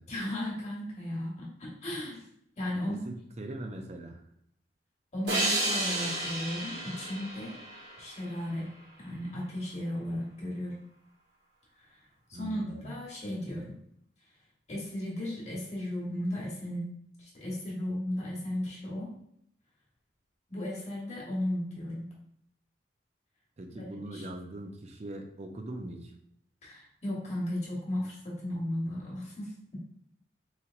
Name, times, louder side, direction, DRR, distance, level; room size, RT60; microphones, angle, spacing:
voice 1, 0.1-2.3 2.6-3.0 5.1-7.6 8.0-8.7 9.0-10.8 11.9-12.0 12.3-13.7 14.7-16.9 17.2-19.1 20.5-22.1 23.7-24.3 26.6-29.8, left 1 dB, 40° left, -4 dB, 1.3 m, -35 dB
voice 2, 2.7-4.2 12.3-13.0 23.6-26.1, right 1 dB, 40° right, 4 dB, 0.5 m, -41 dB
sound 1, 5.3-8.6, right 1 dB, 80° right, 1.1 m, -32 dB
4.0 x 2.9 x 2.5 m, 0.72 s
head